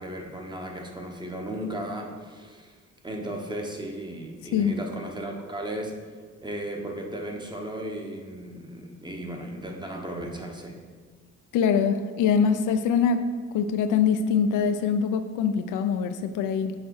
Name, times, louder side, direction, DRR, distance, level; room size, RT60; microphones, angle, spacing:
voice 1, 0.0-2.8 3.0-5.9 6.4-10.8, right 1 dB, 15° right, 2 dB, 0.9 m, -35 dB
voice 2, 11.5-13.3 13.5-16.7, left 6 dB, 80° left, 9 dB, 0.5 m, -23 dB
6.5 x 4.0 x 4.7 m, 1.5 s
cardioid pair, 90°, 30 cm